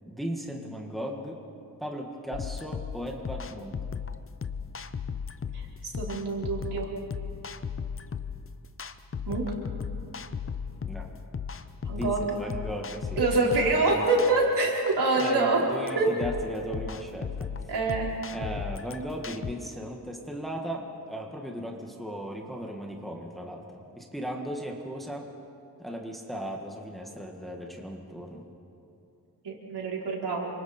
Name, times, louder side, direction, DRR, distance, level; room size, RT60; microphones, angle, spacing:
voice 1, 0.1-1.4 1.8-3.7 10.8-11.1 11.9-14.1 15.2-17.5 18.3-25.3 25.8-28.4, equal, ahead, 0 dB, 1.7 m, -37 dB
sound 1, 2.3-19.5, left 6 dB, 35° left, 0.7 m, -36 dB
voice 2, 6.0-6.9 9.3-9.4 11.9-12.2 13.2-15.6 15.9-16.1 17.7-18.1 29.4-30.5, right 3 dB, 80° right, -3 dB, 4.6 m, -25 dB
28.5 x 26.0 x 4.4 m, 2.6 s
wide cardioid pair, 165°, 39 cm